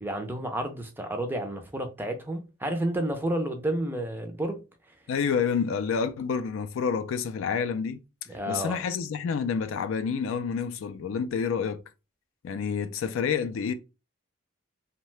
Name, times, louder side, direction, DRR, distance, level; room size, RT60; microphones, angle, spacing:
voice 1, 0.0-4.6 8.3-8.8, right 1 dB, 10° right, 0.4 m, -30 dB
voice 2, 5.1-8.0 8.5-11.8 12.4-13.7, left 6 dB, 70° left, 0.3 m, -28 dB
2.7 x 2.1 x 3.1 m
head